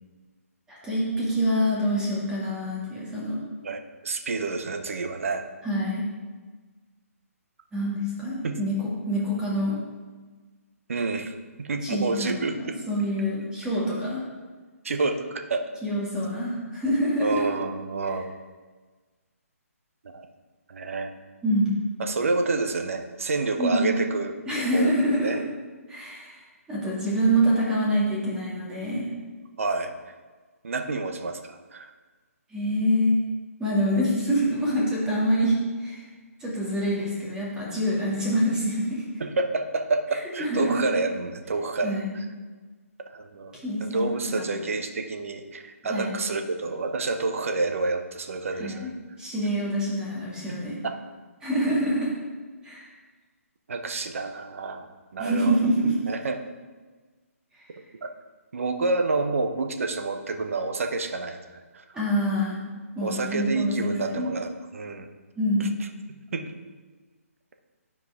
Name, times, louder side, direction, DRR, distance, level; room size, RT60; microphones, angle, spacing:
voice 1, 0.7-3.4 5.6-6.0 7.7-9.8 11.8-14.2 15.8-17.4 18.1-18.2 21.4-21.8 23.6-24.0 24.5-25.4 25.9-26.4 26.7-29.1 32.5-33.2 33.6-36.1 36.4-39.0 40.4-40.9 41.8-42.2 43.6-44.1 44.4-44.6 45.9-46.2 48.6-48.9 49.2-50.8 51.4-52.1 52.6-52.9 55.2-55.9 57.5-57.6 61.9-62.6 63.0-63.8 64.1-64.3 65.4-65.8, equal, 10° right, -6 dB, 2.2 m, -26 dB
voice 2, 3.6-5.5 8.4-8.6 10.9-12.8 14.8-15.7 17.2-18.3 20.0-20.3 20.7-21.1 22.0-24.3 24.7-25.4 29.6-29.9 30.6-31.9 39.2-42.0 43.1-48.9 50.5-50.6 50.8-51.0 53.7-54.9 55.1-55.7 56.1-56.4 58.0-58.1 58.5-61.8 63.0-65.1 65.6-65.7 66.3-66.5, right 3 dB, 60° right, 5 dB, 0.9 m, -29 dB
12.0 x 4.7 x 3.6 m, 1.4 s
figure-of-eight pair, 140°, 8 cm